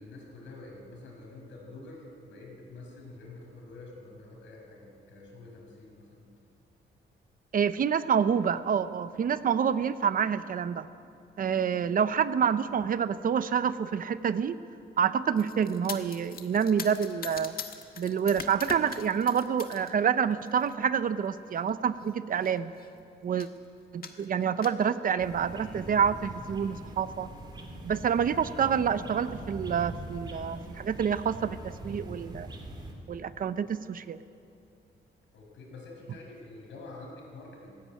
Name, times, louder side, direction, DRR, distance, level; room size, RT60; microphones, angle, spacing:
voice 1, 0.0-6.3 35.3-37.8, left 2 dB, 85° left, 0 dB, 5.9 m, -47 dB
voice 2, 7.5-10.9 11.4-14.6 15.0-17.6 18.0-22.7 23.2-23.5 23.9-27.3 27.8-32.5 33.1-34.2, right 7 dB, 45° right, 13 dB, 0.7 m, -27 dB
sound 1, 15.4-19.9 20.3-20.7 21.6-21.7 22.0-22.1 22.3-22.9 23.4-23.6 24.0-24.9, left 6 dB, 50° left, 1.5 m, -42 dB
sound 2, 25.2-32.9, right 1 dB, 25° right, 2.6 m, -42 dB
19.5 x 16.5 x 9.0 m, 2.6 s
wide cardioid pair, 160°, 19 cm